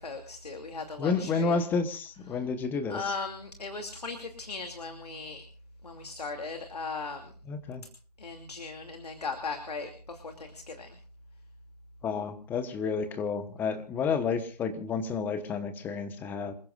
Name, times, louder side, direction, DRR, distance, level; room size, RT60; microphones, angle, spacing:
voice 1, 0.0-1.6 2.3-2.4 2.9-5.4 5.8-7.3 8.2-11.0, left 4 dB, 70° left, 5 dB, 2.8 m, -38 dB
voice 2, 1.0-3.1 7.5-7.8 12.0-16.5, left 5 dB, 10° left, 10 dB, 1.2 m, -30 dB
27.0 x 15.5 x 2.5 m, 0.41 s
figure-of-eight pair, 150°, 21 cm